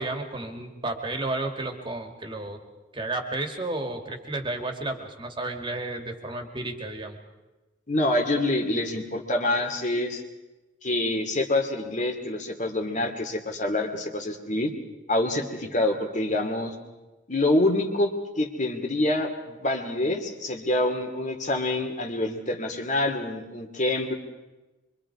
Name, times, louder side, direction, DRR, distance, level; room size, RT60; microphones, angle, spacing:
voice 1, 0.0-2.6 2.9-7.2, right 2 dB, 25° right, 4 dB, 2.4 m, -32 dB
voice 2, 7.9-10.2 10.8-14.7 15.1-16.7 17.3-24.1, left 1 dB, 40° left, 4 dB, 2.5 m, -26 dB
25.0 x 24.5 x 4.9 m, 1.1 s
head